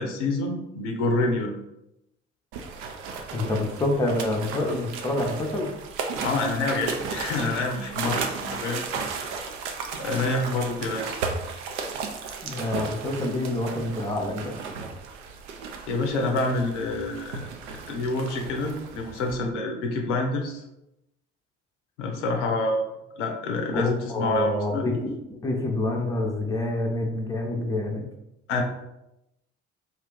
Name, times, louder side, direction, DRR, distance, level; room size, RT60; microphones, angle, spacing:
voice 1, 0.0-1.5 6.2-8.8 9.2-9.3 10.0-11.2 15.9-17.5 17.9-20.6 22.0-22.9 23.2-24.9 28.5-28.6, left 2 dB, 75° left, 3 dB, 0.6 m, -27 dB
sound 1, 2.5-19.4, right 5 dB, 65° right, 0.5 m, -35 dB
voice 2, 3.3-5.7 12.4-14.5 23.7-28.0, left 1 dB, 10° left, 1 dB, 0.6 m, -27 dB
2.7 x 2.4 x 3.6 m, 0.88 s
figure-of-eight pair, 50°, 36 cm